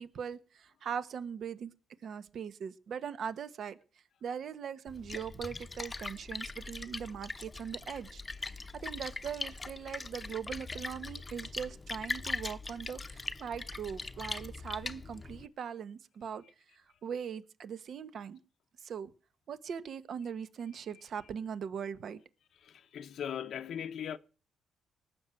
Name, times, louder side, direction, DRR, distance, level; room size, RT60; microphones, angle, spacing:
voice 1, 0.0-1.7 2.0-3.8 4.2-16.4 17.0-18.4 18.8-19.1 19.5-22.2, right 7 dB, 60° right, 1.1 m, -40 dB
Splash splatter, 4.9-15.5, left 3 dB, 25° left, 0.8 m, -41 dB
voice 2, 22.6-24.2, left 8 dB, 65° left, 0.8 m, -39 dB
18.5 x 6.3 x 9.0 m
cardioid pair, 90°, 0 cm